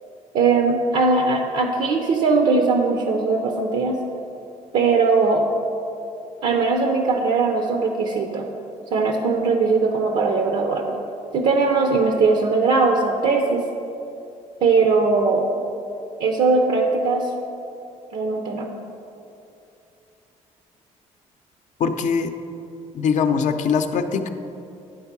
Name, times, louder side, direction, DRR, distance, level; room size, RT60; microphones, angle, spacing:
voice 1, 0.3-4.0 4.7-5.4 6.4-8.5 8.9-10.9 11.3-13.6 14.6-15.5 16.2-17.3 18.1-18.7, right 4 dB, 70° right, 3 dB, 0.6 m, -20 dB
voice 2, 21.8-22.3 22.9-24.3, left 6 dB, 70° left, 7 dB, 0.5 m, -22 dB
10.0 x 3.6 x 5.9 m, 2.7 s
cardioid pair, 100°, 13 cm